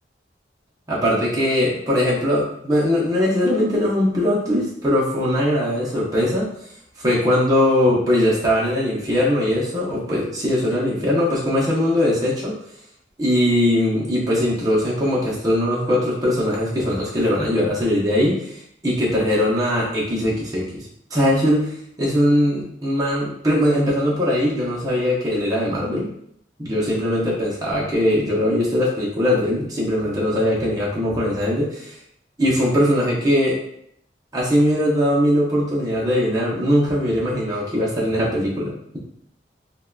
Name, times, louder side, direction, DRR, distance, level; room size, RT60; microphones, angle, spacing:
voice 1, 0.9-6.5 7.0-12.6 13.2-20.8 21.1-26.1 26.6-31.9 32.4-33.6 34.3-39.0, left 1 dB, 20° right, -6 dB, 0.6 m, -20 dB
3.6 x 2.2 x 2.2 m, 0.70 s
head